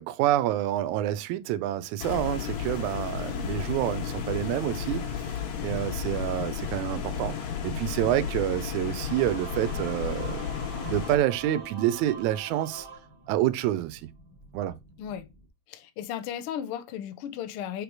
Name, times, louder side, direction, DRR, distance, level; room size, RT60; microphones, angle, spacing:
voice 1, 0.0-5.2 5.6-10.5 10.8-12.9 13.3-14.0 14.5-14.7, right 13 dB, 85° right, 1.9 m, -28 dB
ac fan w switch-off compressor, 2.0-11.2, left 7 dB, 70° left, 2.5 m, -33 dB
sound 1, 4.2-15.5, equal, 25° left, 1.1 m, -53 dB
Singing / Musical instrument, 8.9-13.8, right 4 dB, 30° right, 1.4 m, -44 dB
voice 2, 15.7-17.8, left 9 dB, 85° left, 1.2 m, -35 dB
5.2 x 4.6 x 4.6 m
omnidirectional pair, 3.4 m